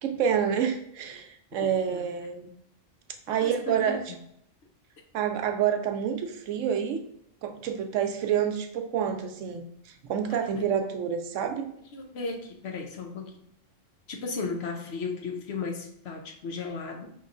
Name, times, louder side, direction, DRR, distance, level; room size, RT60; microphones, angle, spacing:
voice 1, 0.0-2.5 3.3-4.0 5.1-7.0 7.4-9.7 10.1-11.7, right 8 dB, 80° right, 6 dB, 0.9 m, -28 dB
voice 2, 1.6-2.1 3.3-4.0 10.3-10.7 11.9-13.4 14.1-17.1, left 4 dB, 60° left, 2 dB, 0.8 m, -36 dB
5.3 x 3.0 x 2.5 m, 0.72 s
omnidirectional pair, 1.3 m